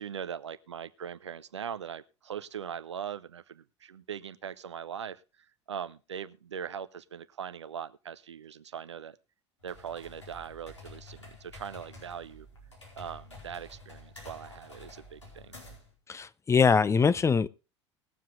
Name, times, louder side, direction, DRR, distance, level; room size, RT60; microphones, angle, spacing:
voice 1, 0.0-5.2 5.7-9.2 9.6-12.5 13.0-15.5, right 8 dB, 75° right, 0.8 m, -40 dB
sound 1, 9.6-15.9, left 2 dB, 85° left, 4.7 m, -50 dB
voice 2, 16.1-17.5, left 5 dB, 20° left, 0.7 m, -23 dB
20.0 x 7.5 x 3.8 m
figure-of-eight pair, 70°, 15 cm